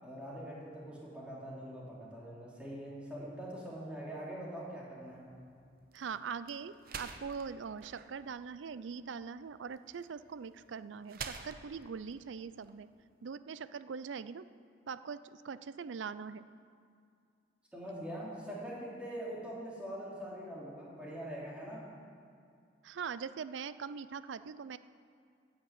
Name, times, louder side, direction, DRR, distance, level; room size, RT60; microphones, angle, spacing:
voice 1, 0.0-5.2 17.7-21.8, right 1 dB, 5° right, -6 dB, 3.1 m, -43 dB
sound 1, 5.0-13.3, right 5 dB, 55° right, 0.8 m, -50 dB
voice 2, 5.9-12.9 13.2-14.5 14.9-16.4 22.8-24.8, right 6 dB, 80° right, 15 dB, 0.4 m, -42 dB
10.5 x 8.8 x 8.2 m, 2.3 s
head